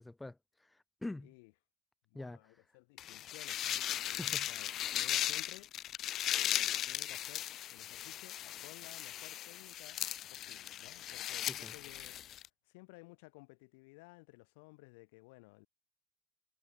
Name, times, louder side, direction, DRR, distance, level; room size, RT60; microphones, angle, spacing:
voice 1, 0.0-1.3 2.1-2.4 4.2-4.5 11.5-11.7, left 2 dB, 5° left, 0.8 m, -45 dB
voice 2, 1.2-1.5 2.1-10.0 10.3-15.7, left 28 dB, 85° left, 4.6 m, -57 dB
sound 1, 3.0-12.5, left 12 dB, 40° left, 0.6 m, -37 dB
cardioid pair, 155°, 0 cm